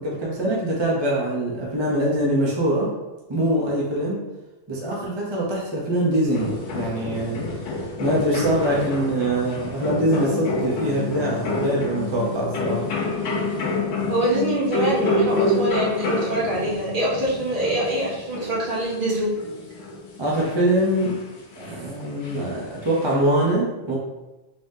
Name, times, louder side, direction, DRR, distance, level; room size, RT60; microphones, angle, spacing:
voice 1, 0.0-2.9 3.3-4.2 4.7-7.4 8.0-12.9 20.2-21.2 21.6-23.9, right 1 dB, 30° right, -4 dB, 0.6 m, -23 dB
sound 1, 6.3-23.1, left 2 dB, 75° left, 1.0 m, -28 dB
voice 2, 14.1-19.3, right 1 dB, 45° right, -6 dB, 1.2 m, -24 dB
3.4 x 3.4 x 2.7 m, 1.1 s
omnidirectional pair, 1.3 m